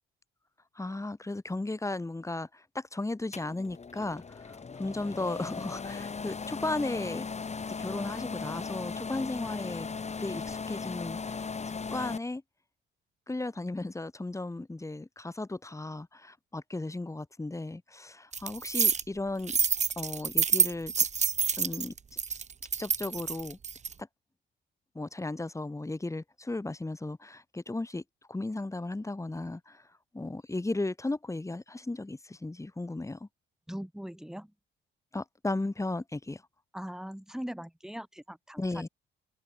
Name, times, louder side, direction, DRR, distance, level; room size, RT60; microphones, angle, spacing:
voice 1, 0.8-7.3 7.8-9.9 10.2-11.5 11.9-12.4 13.3-19.6 20.0-20.9 21.6-21.9 22.8-23.6 24.0-24.1 24.9-28.0 28.3-29.9 30.1-33.3 35.1-36.4 38.6-38.9, left 2 dB, 15° left, 5.5 m, -35 dB
sound 1, 3.3-12.2, left 5 dB, 35° left, 6.2 m, -38 dB
sound 2, 18.3-19.0 19.4-23.9, right 6 dB, 35° right, 1.3 m, -27 dB
voice 2, 33.7-34.5 36.7-38.6, equal, 5° right, 4.3 m, -40 dB
cardioid pair, 90°, 20 cm